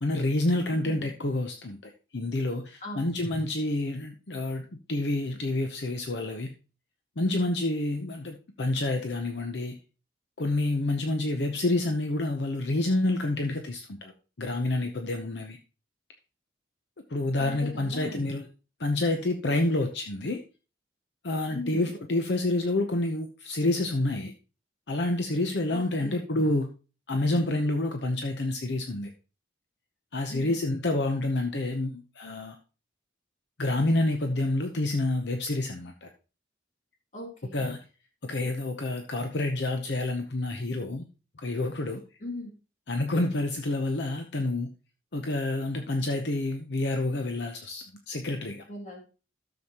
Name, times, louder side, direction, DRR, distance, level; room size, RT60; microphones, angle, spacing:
voice 1, 0.0-6.5 7.2-9.8 10.4-14.1 14.4-15.6 17.1-18.5 18.8-20.4 21.2-24.3 24.9-26.7 27.1-29.1 30.1-32.6 33.6-36.1 37.5-37.8 38.2-41.0 41.4-42.0 42.9-44.7 45.1-48.6, left 2 dB, 65° left, 5 dB, 0.8 m, -28 dB
voice 2, 0.7-1.1 2.8-3.1 17.4-18.3 21.5-22.0 25.7-26.3 30.3-30.6 37.1-37.7 42.2-42.5 48.7-49.0, left 1 dB, 40° left, 0 dB, 2.6 m, -39 dB
13.0 x 7.0 x 2.9 m, 0.34 s
head